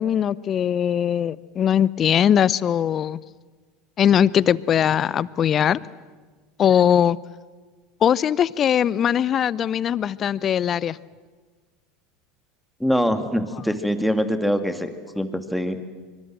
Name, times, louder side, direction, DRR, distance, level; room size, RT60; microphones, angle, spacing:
voice 1, 0.0-3.2 4.0-5.8 6.6-7.2 8.0-11.0, left 9 dB, 40° left, 21 dB, 0.7 m, -20 dB
voice 2, 12.8-14.9 15.2-15.8, equal, ahead, 8 dB, 2.4 m, -23 dB
25.5 x 24.5 x 7.6 m, 1.4 s
hypercardioid pair, 80°, 0 cm